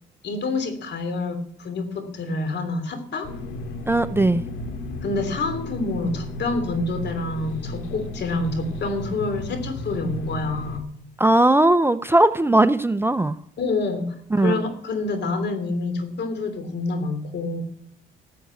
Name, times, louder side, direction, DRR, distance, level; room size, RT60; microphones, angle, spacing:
voice 1, 0.2-3.3 5.0-10.9 13.6-17.6, left 3 dB, 60° left, 9 dB, 3.1 m, -27 dB
sound 1, 3.2-10.8, left 1 dB, 85° left, 2.2 m, -34 dB
voice 2, 3.9-4.4 11.2-13.4 14.3-14.6, right 2 dB, 10° right, 13 dB, 0.5 m, -18 dB
14.0 x 7.7 x 8.3 m, 0.72 s
cardioid pair, 90°, 20 cm